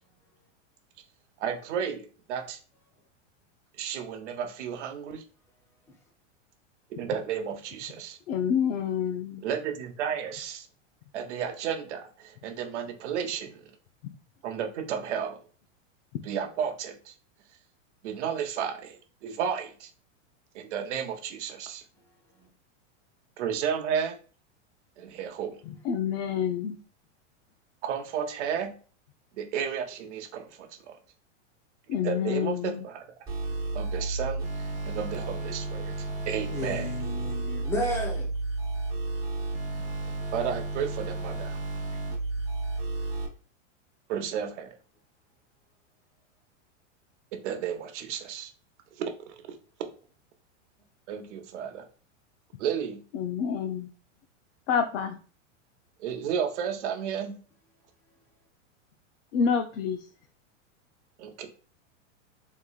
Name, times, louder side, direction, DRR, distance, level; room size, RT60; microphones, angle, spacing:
voice 1, 1.4-2.6 3.8-5.2 7.0-8.2 9.4-10.7 11.1-13.7 14.4-15.4 16.2-17.1 18.0-19.9 20.5-21.8 23.4-24.2 25.0-25.6 27.8-28.8 29.3-31.0 32.0-33.1 33.7-36.9 40.3-41.6 44.1-44.8 47.3-48.5 49.0-49.1 49.5-49.6 51.1-51.8 52.6-53.0 56.0-57.3 61.2-61.5, right 8 dB, 65° right, 0.9 m, -33 dB
voice 2, 8.3-9.4 25.7-26.8 31.9-32.8 53.1-53.9 54.7-55.2 59.3-60.1, left 7 dB, 70° left, 0.6 m, -28 dB
sound 1, 33.3-43.3, right 2 dB, 10° right, 1.2 m, -32 dB
voice 3, 36.5-38.3, equal, 5° left, 0.5 m, -33 dB
3.7 x 3.1 x 2.3 m
supercardioid pair, 150°, 37 cm